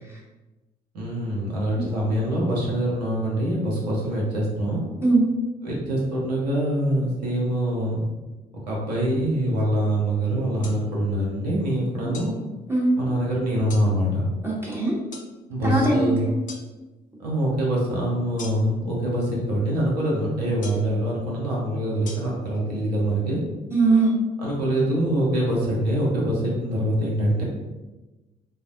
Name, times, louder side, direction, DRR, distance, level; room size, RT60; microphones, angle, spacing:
voice 1, 0.9-4.8 5.6-8.1 8.7-12.3 13.0-14.2 15.5-16.2 17.2-23.4 24.4-27.4, right 1 dB, 80° right, -3 dB, 0.7 m, -24 dB
sound 1, 10.6-10.8 12.1-12.3 13.7-13.9 15.1-15.3 16.5-16.7 18.4-18.8 20.6-20.9 22.1-22.2, left 4 dB, 40° left, 0.5 m, -39 dB
voice 2, 14.4-15.0 15.6-16.3 23.7-24.1, right 3 dB, 10° right, -5 dB, 0.9 m, -20 dB
3.9 x 2.0 x 2.5 m, 1.1 s
figure-of-eight pair, 45°, 20 cm